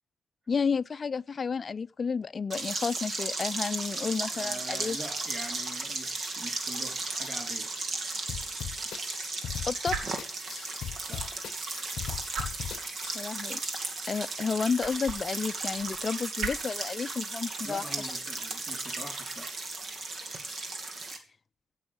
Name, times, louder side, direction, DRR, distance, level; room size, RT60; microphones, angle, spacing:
voice 1, 0.5-5.0 9.7-10.0 13.1-13.6 14.1-17.8, left 5 dB, 40° left, 0.5 m, -31 dB
sound 1, 2.5-21.2, right 3 dB, 60° right, 2.4 m, -35 dB
voice 2, 4.3-7.7 11.1-11.3 17.6-19.5, right 1 dB, 25° right, 4.4 m, -43 dB
sound 2, 7.0-20.4, right 5 dB, 75° right, 2.1 m, -44 dB
sound 3, 8.3-13.3, left 10 dB, 75° left, 0.7 m, -38 dB
16.0 x 6.3 x 6.5 m
cardioid pair, 85°, 0 cm